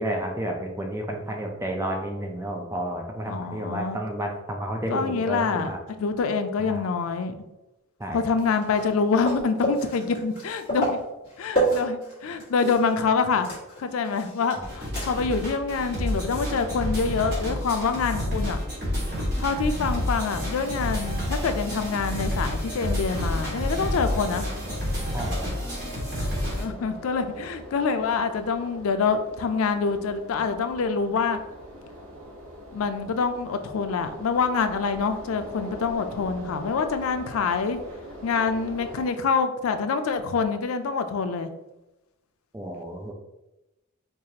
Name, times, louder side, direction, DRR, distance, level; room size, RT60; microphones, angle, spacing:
voice 1, 0.0-5.8 6.7-6.9 8.0-8.2 14.6-14.7 25.1-25.5 42.5-43.1, right 1 dB, 15° right, 2 dB, 0.4 m, -31 dB
voice 2, 3.3-4.0 4.9-7.3 8.1-11.0 11.4-13.5 13.8-18.6 19.4-24.4 26.6-31.4 32.7-37.8 38.2-41.5, left 5 dB, 85° left, 9 dB, 0.4 m, -26 dB
sound 1, 8.4-13.0 13.2-15.4 15.8-15.9 18.4-18.5, right 1 dB, 25° left, 1.5 m, -30 dB
sound 2, 14.6-26.6, equal, 50° right, 1.4 m, -29 dB
sound 3, 24.6-39.1, equal, 75° right, 0.7 m, -43 dB
4.6 x 2.4 x 2.8 m, 0.96 s
head